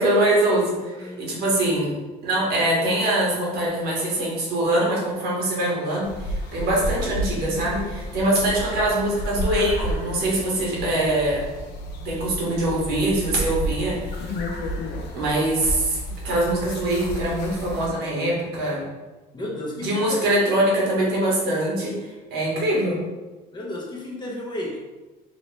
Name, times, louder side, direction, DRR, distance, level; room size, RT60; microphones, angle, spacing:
voice 1, 0.0-1.9 2.2-11.5 12.0-14.3 15.1-16.0 16.2-18.8 19.8-22.0 22.3-23.0, right 1 dB, 75° right, -4 dB, 1.2 m, -23 dB
sound 1, 6.0-17.9, equal, 80° left, 0.6 m, -31 dB
voice 2, 19.3-20.3 23.5-24.8, left 1 dB, 25° left, -3 dB, 0.8 m, -32 dB
3.0 x 2.9 x 3.1 m, 1.2 s
cardioid pair, 110°, 17 cm